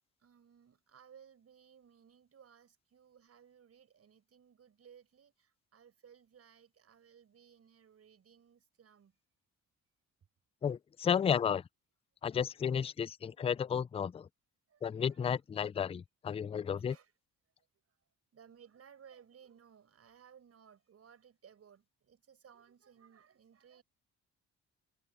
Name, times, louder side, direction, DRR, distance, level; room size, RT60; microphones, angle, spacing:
voice 1, 0.2-9.1 12.3-12.4 13.3-13.6 14.7-14.8 16.6-17.1 17.9-18.0 18.3-23.8, right 8 dB, 50° right, 5.9 m, -61 dB
voice 2, 10.6-11.6 12.2-14.3 14.8-17.0, left 7 dB, 20° left, 0.3 m, -33 dB
cardioid pair, 90°, 30 cm